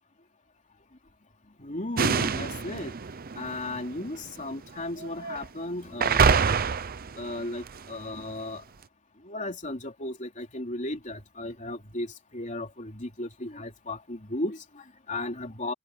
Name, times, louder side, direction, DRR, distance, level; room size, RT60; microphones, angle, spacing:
voice 1, 1.6-2.9 3.4-6.3 7.2-8.6 9.2-15.7, left 1 dB, 40° left, 3.2 m, -35 dB
sound 1, 2.0-4.4 5.0-5.5 6.0-7.9, right 5 dB, 45° right, 0.7 m, -26 dB
open air
head